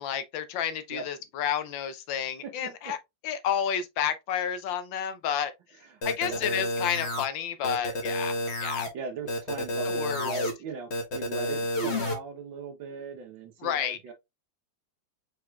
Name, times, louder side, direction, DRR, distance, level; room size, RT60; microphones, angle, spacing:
voice 1, 0.0-3.0 3.2-5.5 6.0-8.3 8.6-8.9 9.9-10.4 13.6-14.0, left 8 dB, 80° left, 1.4 m, -30 dB
voice 2, 2.4-2.9 5.8-6.4 8.8-14.1, right 5 dB, 80° right, 1.8 m, -39 dB
sound 1, 6.0-7.3 7.6-8.9 9.3-10.5 10.9-12.1, left 1 dB, 40° left, 1.3 m, -30 dB
4.7 x 4.7 x 2.3 m
omnidirectional pair, 2.1 m